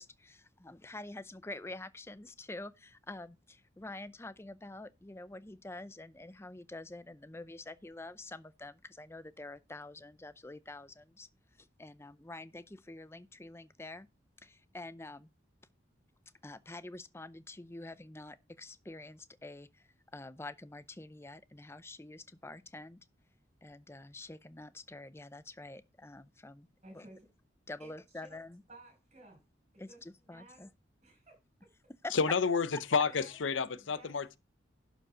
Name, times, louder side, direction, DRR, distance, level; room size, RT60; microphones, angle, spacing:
voice 1, 0.0-11.3 11.6-14.1 14.4-15.3 16.4-23.0 23.6-26.7 26.9-27.1 27.7-28.6 29.8-30.7 31.9-32.1, left 2 dB, 15° left, 0.5 m, -47 dB
voice 2, 26.8-27.2 27.8-27.9 28.3-28.4 28.7-29.4 29.7-30.6 31.0-31.4 33.0-34.1, right 1 dB, 35° right, 5.9 m, -55 dB
voice 3, 32.1-34.4, left 5 dB, 90° left, 0.6 m, -30 dB
11.5 x 5.2 x 4.8 m
head